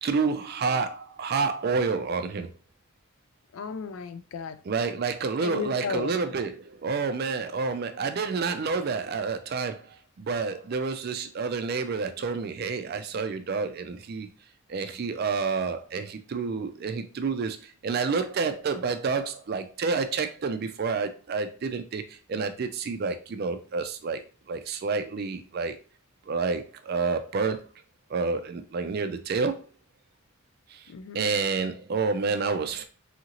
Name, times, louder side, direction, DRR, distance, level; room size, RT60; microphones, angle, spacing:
voice 1, 0.0-2.5 4.7-9.8 10.2-14.3 14.7-17.6 17.8-22.0 22.3-24.2 24.5-25.8 26.3-27.6 28.1-29.6 31.1-32.8, right 4 dB, 45° right, 0.4 m, -29 dB
voice 2, 3.5-4.6 5.4-6.2 30.9-31.3, left 6 dB, 70° left, 0.3 m, -34 dB
2.8 x 2.5 x 2.9 m
head